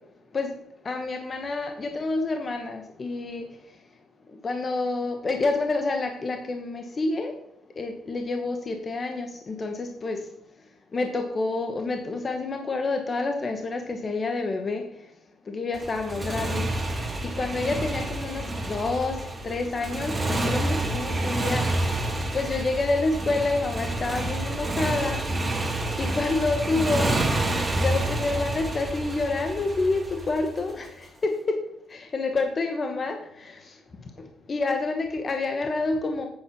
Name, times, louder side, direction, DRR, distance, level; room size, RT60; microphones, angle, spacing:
voice 1, 0.8-3.5 4.3-7.3 7.8-10.3 10.9-15.1 15.4-16.7 17.2-22.0 22.3-25.2 26.0-27.2 27.8-31.6 31.9-33.8 34.2-36.3, left 3 dB, 40° left, 5 dB, 1.2 m, -28 dB
Motorcycle, 15.7-30.9, right 2 dB, 20° right, 2.3 m, -28 dB
8.8 x 6.5 x 5.9 m, 0.76 s
cardioid pair, 90°, 0 cm